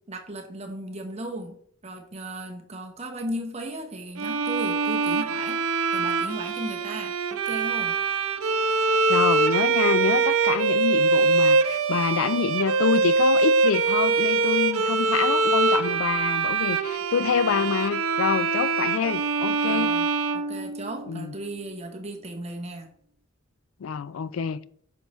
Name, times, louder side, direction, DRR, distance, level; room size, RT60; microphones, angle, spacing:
voice 1, 0.1-5.7 5.9-8.0 19.6-20.1 20.3-22.9, right 1 dB, 30° right, 1.0 m, -36 dB
Bowed string instrument, 4.2-21.2, right 4 dB, 90° right, 0.7 m, -23 dB
voice 2, 9.1-19.9 21.1-21.3 23.8-24.6, left 6 dB, 75° left, 0.4 m, -26 dB
7.9 x 5.5 x 3.1 m
head